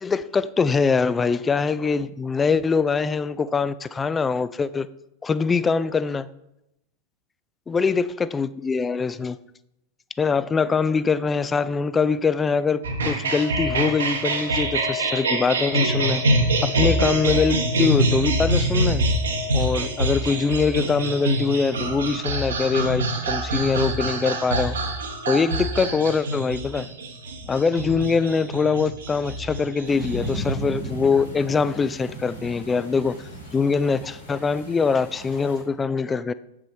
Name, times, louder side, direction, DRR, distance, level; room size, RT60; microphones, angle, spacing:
voice 1, 0.0-4.9 5.2-6.3 7.7-9.4 10.2-12.8 13.1-16.2 16.6-19.0 19.5-24.8 25.3-26.9 27.5-33.2 33.5-36.3, left 5 dB, 15° left, 16 dB, 0.3 m, -23 dB
sound 1, 12.8-30.5, right 1 dB, 65° right, 1.3 m, -25 dB
sound 2, 29.8-35.6, right 2 dB, 85° left, 2.5 m, -35 dB
8.1 x 6.1 x 4.4 m, 0.87 s
figure-of-eight pair, 90°, 0 cm